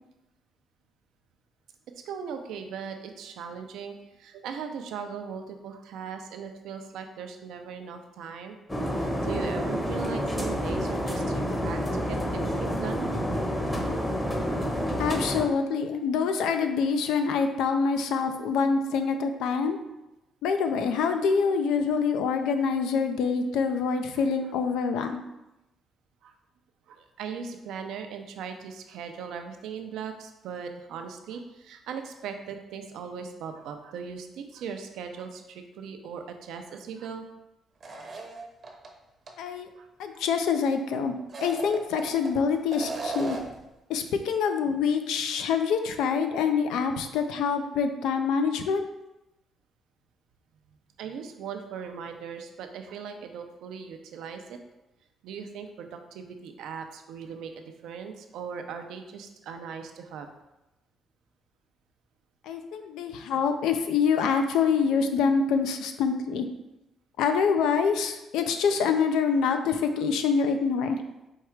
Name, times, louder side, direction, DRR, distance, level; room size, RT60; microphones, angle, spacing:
voice 1, 2.1-8.5 9.0-13.1 18.6-18.7 23.4-23.5 26.2-26.3 26.9-37.2 38.7-38.8 39.8-39.9 40.1-40.2 51.0-54.6 55.2-60.3, right 6 dB, 85° right, 5 dB, 0.5 m, -39 dB
sound 1, 8.7-15.5, equal, 20° left, 0.8 m, -29 dB
voice 2, 15.0-19.8 20.4-25.2 39.4-39.7 40.0-41.1 41.4-43.4 43.9-48.8 62.5-66.5 67.2-71.0, left 5 dB, 90° left, 7 dB, 0.4 m, -25 dB
sound 2, 37.8-38.9 39.3-39.4 41.2-42.3 42.7-43.6, right 3 dB, 40° right, 0.7 m, -36 dB
4.6 x 2.4 x 4.4 m, 0.95 s
cardioid pair, 90°, 0 cm